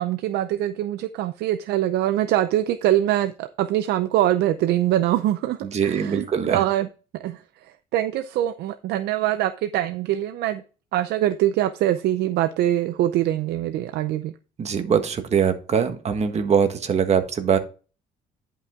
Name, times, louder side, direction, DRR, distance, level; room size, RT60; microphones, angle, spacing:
voice 1, 0.0-6.9 7.2-10.6 10.9-14.3, right 13 dB, 80° right, 10 dB, 0.6 m, -23 dB
voice 2, 5.7-6.6 14.6-17.6, right 7 dB, 40° right, 7 dB, 1.4 m, -22 dB
10.5 x 5.6 x 3.6 m, 0.35 s
cardioid pair, 110°, 17 cm